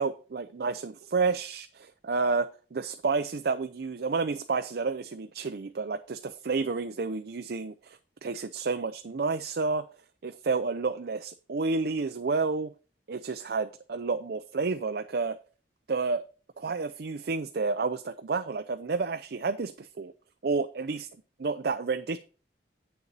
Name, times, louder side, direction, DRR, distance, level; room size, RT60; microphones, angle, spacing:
voice 1, 0.0-9.9 10.2-12.7 13.1-15.4 15.9-16.2 16.6-20.1 20.4-21.1 21.4-22.2, right 4 dB, 60° right, 0.5 m, -30 dB
8.5 x 6.9 x 4.0 m
head